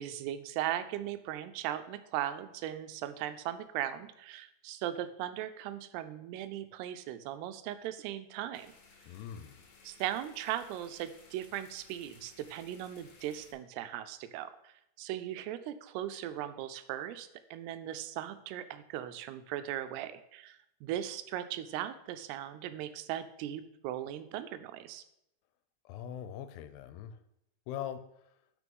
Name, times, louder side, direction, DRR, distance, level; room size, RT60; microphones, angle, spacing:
voice 1, 0.0-8.7 9.8-25.0, right 12 dB, 85° right, 11 dB, 2.7 m, -38 dB
sound 1, 8.5-13.5, left 4 dB, 60° left, 2.0 m, -59 dB
voice 2, 9.1-9.6 25.9-27.2 27.7-28.0, left 10 dB, 85° left, 11 dB, 2.7 m, -41 dB
6.2 x 6.1 x 5.3 m, 0.79 s
omnidirectional pair, 4.7 m